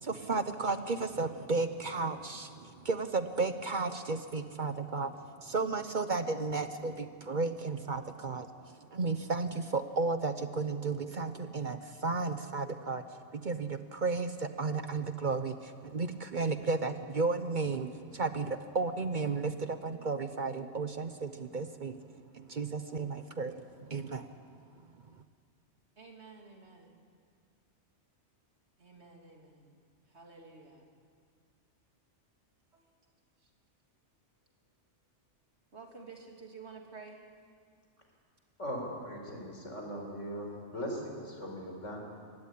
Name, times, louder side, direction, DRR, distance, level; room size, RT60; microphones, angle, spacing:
voice 1, 0.0-13.0 13.3-22.0 22.3-24.3, right 3 dB, 45° right, 10 dB, 1.0 m, -33 dB
voice 2, 26.0-27.0 28.8-29.8 30.1-30.9 32.7-32.9 33.4-33.5 35.7-37.2, right 4 dB, 65° right, 1 dB, 3.2 m, -51 dB
voice 3, 38.6-42.0, equal, 85° left, 1 dB, 5.2 m, -39 dB
23.5 x 17.0 x 9.9 m, 2.2 s
omnidirectional pair, 1.2 m